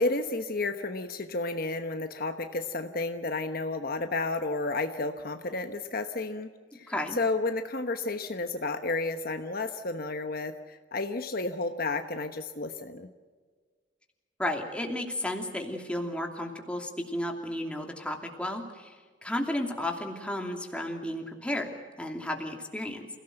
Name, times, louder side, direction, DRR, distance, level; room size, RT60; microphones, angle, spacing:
voice 1, 0.0-13.1, left 3 dB, 50° left, 7 dB, 1.1 m, -32 dB
voice 2, 6.9-7.2 14.4-19.0 19.2-23.1, left 1 dB, 5° left, 2 dB, 2.8 m, -33 dB
28.0 x 17.0 x 7.9 m, 1.5 s
head